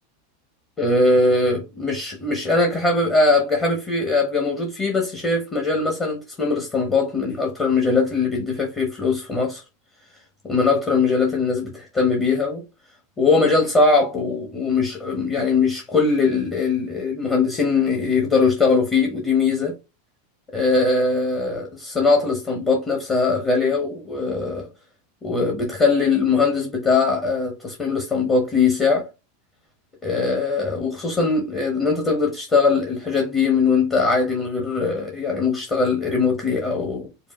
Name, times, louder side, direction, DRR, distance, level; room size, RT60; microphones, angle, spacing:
voice 1, 0.8-9.6 10.4-12.6 13.2-19.7 20.5-24.7 25.2-29.1 30.0-37.1, left 4 dB, 25° left, 1.2 m, -21 dB
5.2 x 2.3 x 3.2 m
figure-of-eight pair, 85°, 0 cm